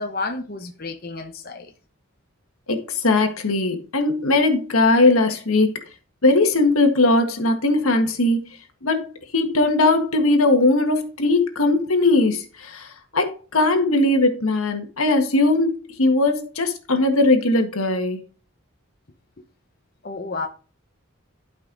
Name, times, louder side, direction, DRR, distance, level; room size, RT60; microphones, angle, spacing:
voice 1, 0.0-1.7 20.0-20.5, left 3 dB, 45° left, 0.9 m, -31 dB
voice 2, 2.7-5.7 6.2-8.5 8.8-12.9 13.1-18.2, left 2 dB, 85° left, 1.7 m, -19 dB
11.5 x 5.5 x 4.0 m
head